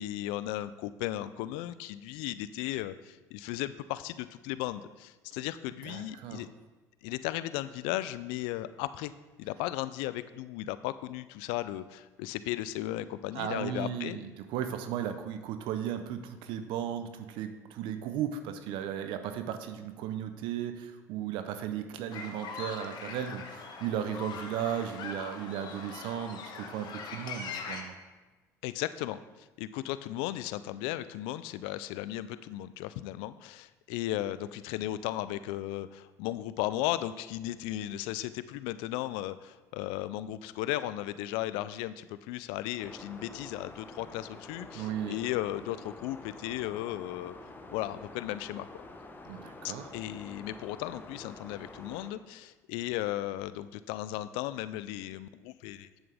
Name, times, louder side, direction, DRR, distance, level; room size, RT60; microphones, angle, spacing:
voice 1, 0.0-6.5 7.0-9.1 9.4-14.2 28.6-47.3 47.7-48.7 49.6-55.9, left 14 dB, 80° left, 14 dB, 0.4 m, -36 dB
voice 2, 5.8-6.4 13.3-27.9 44.7-45.2 49.3-49.9, right 9 dB, 70° right, 9 dB, 0.6 m, -36 dB
sound 1, 22.1-27.8, left 5 dB, 55° left, 1.1 m, -41 dB
sound 2, 42.8-52.1, left 2 dB, 20° left, 0.9 m, -48 dB
8.0 x 7.5 x 3.4 m, 1.2 s
supercardioid pair, 75°, 9 cm